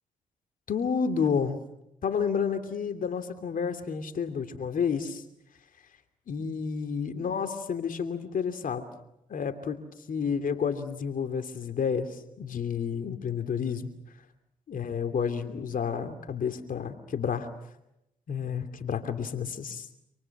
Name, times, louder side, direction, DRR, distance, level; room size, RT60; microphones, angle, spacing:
voice 1, 0.7-1.6 2.0-5.2 6.3-8.8 9.3-9.8 10.1-13.9 14.7-17.5 18.3-19.9, left 6 dB, 60° left, 8 dB, 2.9 m, -30 dB
28.5 x 27.5 x 6.1 m, 0.84 s
supercardioid pair, 55°, 16 cm